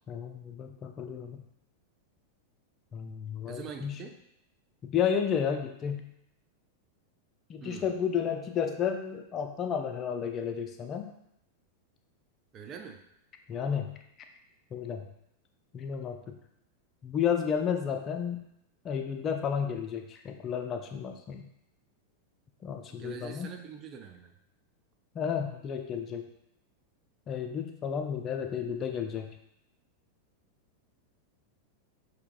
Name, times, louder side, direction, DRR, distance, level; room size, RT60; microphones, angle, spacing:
voice 1, 0.1-1.4 2.9-4.0 4.8-6.1 7.5-11.1 13.5-14.0 14.7-15.0 15.7-16.4 17.0-18.4 18.8-21.5 22.6-23.5 25.1-26.3 27.3-29.3, left 7 dB, 30° left, 5 dB, 0.5 m, -32 dB
voice 2, 3.5-4.2 7.6-7.9 12.5-13.0 22.9-24.3, right 7 dB, 30° right, 5 dB, 0.5 m, -44 dB
5.7 x 2.8 x 2.5 m, 0.77 s
figure-of-eight pair, 90°, 0 cm